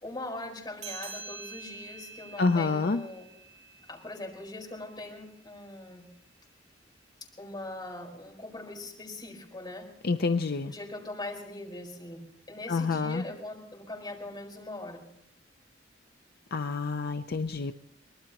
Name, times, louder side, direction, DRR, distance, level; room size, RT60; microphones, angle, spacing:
voice 1, 0.0-3.3 3.9-6.1 7.4-9.9 10.6-15.0, left 2 dB, 25° left, 0 dB, 4.5 m, -41 dB
sound 1, 0.8-5.7, right 5 dB, 40° right, 8.0 m, -47 dB
voice 2, 2.4-3.0 10.0-10.7 12.7-13.2 16.5-17.7, left 4 dB, 55° left, 8 dB, 0.6 m, -28 dB
24.0 x 20.0 x 3.0 m, 0.75 s
head